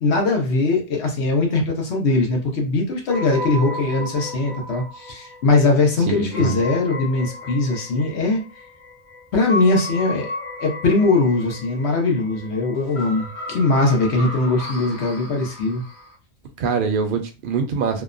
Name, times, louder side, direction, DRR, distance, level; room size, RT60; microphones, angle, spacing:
voice 1, 0.0-8.4 9.3-10.3 10.6-15.8, left 3 dB, 80° left, 1 dB, 1.1 m, -20 dB
sound 1, 3.1-16.1, left 1 dB, 45° left, 1.1 m, -34 dB
voice 2, 6.1-6.6 16.6-18.0, right 5 dB, 60° right, 6 dB, 0.7 m, -23 dB
2.8 x 2.1 x 2.4 m, 0.33 s
omnidirectional pair, 1.1 m